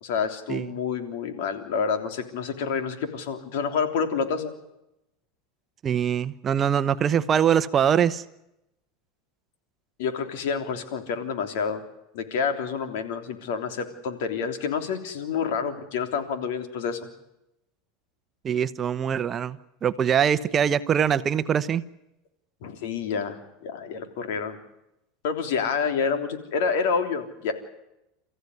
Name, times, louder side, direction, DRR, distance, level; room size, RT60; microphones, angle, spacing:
voice 1, 0.0-4.5 10.0-11.8 12.1-17.0 22.6-24.6 25.2-27.5, left 6 dB, 75° left, 7 dB, 3.3 m, -28 dB
voice 2, 5.8-8.2 18.4-21.8, right 8 dB, 30° right, 13 dB, 1.0 m, -23 dB
29.5 x 15.0 x 9.6 m, 0.88 s
supercardioid pair, 130°, 0 cm